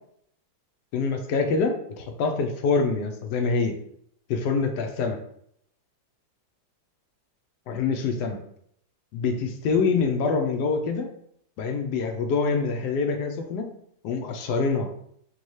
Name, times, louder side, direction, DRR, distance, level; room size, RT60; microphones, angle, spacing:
voice 1, 0.9-3.8 4.3-5.2 7.7-8.4 9.1-11.1 11.6-13.7 14.0-14.9, left 4 dB, 75° left, 5 dB, 1.1 m, -25 dB
5.2 x 2.3 x 3.1 m, 0.69 s
omnidirectional pair, 2.0 m